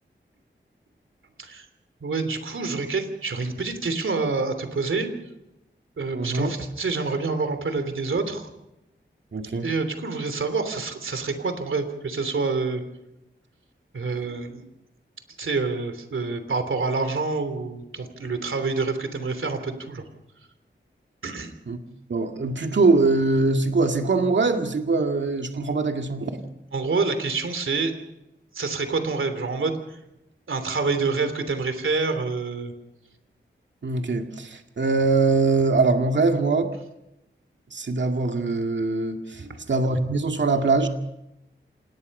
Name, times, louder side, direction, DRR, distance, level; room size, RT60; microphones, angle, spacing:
voice 1, 2.0-5.1 6.0-8.5 9.6-12.8 13.9-14.6 15.4-20.0 21.2-21.5 26.7-27.9 28.5-29.8 30.5-32.7 39.4-39.6, right 4 dB, 85° right, 9 dB, 3.2 m, -27 dB
voice 2, 6.1-6.5 9.3-9.7 21.7-21.8 22.1-26.4 33.8-36.7 37.7-40.9, right 3 dB, 65° right, 4 dB, 2.1 m, -22 dB
27.0 x 20.0 x 5.5 m, 0.88 s
wide cardioid pair, 75°, 20 cm